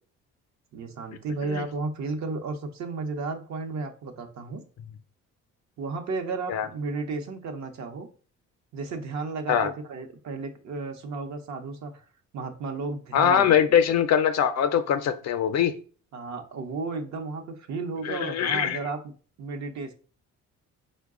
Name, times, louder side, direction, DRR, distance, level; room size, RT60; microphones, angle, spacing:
voice 1, 0.7-4.6 5.8-8.1 8.7-12.0 12.3-13.6 16.1-19.1 19.4-19.9, right 3 dB, 65° right, 0.8 m, -33 dB
voice 2, 13.1-15.8 18.0-18.8, left 8 dB, 60° left, 0.5 m, -22 dB
4.7 x 2.1 x 3.6 m
cardioid pair, 90°, 30 cm